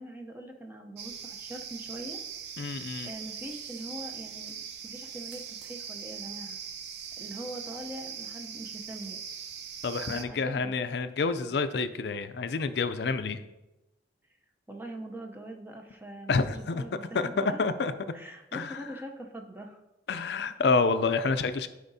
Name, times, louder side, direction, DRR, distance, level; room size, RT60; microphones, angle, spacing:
voice 1, 0.0-2.2 3.0-4.5 4.8-6.6 7.2-9.2 10.1-10.7 14.7-17.6 18.1-19.8, right 1 dB, 10° right, 2 dB, 0.6 m, -42 dB
sound 1, 1.0-10.2, right 7 dB, 70° right, 0.6 m, -41 dB
voice 2, 2.6-3.1 9.8-13.5 16.3-16.9 17.1-17.9 18.5-18.8 20.1-21.7, left 4 dB, 65° left, 11 dB, 0.4 m, -28 dB
11.5 x 4.9 x 2.7 m, 0.97 s
head